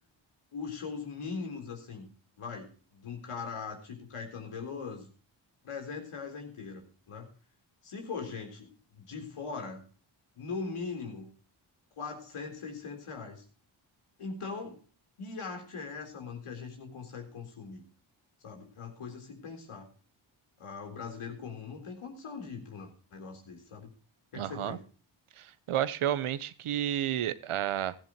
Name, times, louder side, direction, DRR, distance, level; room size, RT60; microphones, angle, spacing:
voice 1, 0.5-2.1 2.4-5.1 5.6-7.3 7.8-9.8 10.4-11.3 12.0-13.4 14.2-14.8 15.2-17.8 18.4-19.9 20.6-23.9 24.3-24.8, left 5 dB, 80° left, 3.8 m, -40 dB
voice 2, 24.3-24.8 25.4-28.0, right 11 dB, 80° right, 1.0 m, -31 dB
15.0 x 14.0 x 3.0 m
cardioid pair, 45°, 50 cm